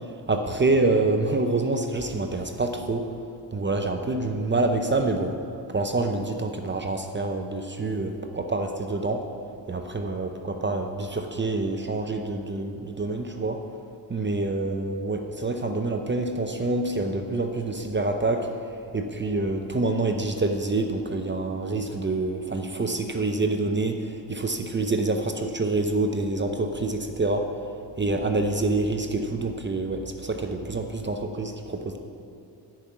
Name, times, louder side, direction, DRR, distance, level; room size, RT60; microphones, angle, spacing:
voice 1, 0.0-3.1 3.5-5.4 5.7-9.2 9.7-13.6 14.1-18.5 18.9-27.5 28.0-32.0, right 2 dB, 25° right, 5 dB, 0.7 m, -27 dB
11.0 x 5.4 x 8.6 m, 2.5 s
cardioid pair, 95°, 42 cm